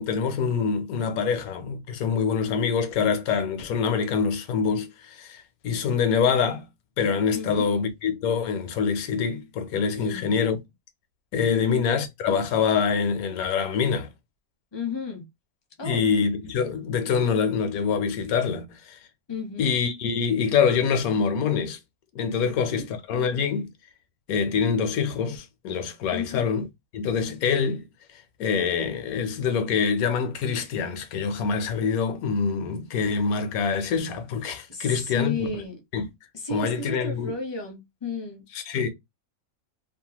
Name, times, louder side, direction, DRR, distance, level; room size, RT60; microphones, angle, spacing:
voice 1, 0.0-6.7 7.0-10.6 11.3-14.1 15.8-19.0 19.6-21.8 22.1-23.7 24.3-26.7 26.9-27.8 28.4-35.6 35.9-36.1 36.5-37.3 38.7-38.9, left 6 dB, 75° left, 1.1 m, -25 dB
voice 2, 7.3-7.7 10.0-10.4 11.5-11.8 14.7-15.3 15.8-16.3 19.3-19.7 22.4-22.9 26.1-26.4 34.7-35.8 36.3-38.4, left 4 dB, 25° left, 0.6 m, -33 dB
2.8 x 2.1 x 2.8 m
omnidirectional pair, 1.6 m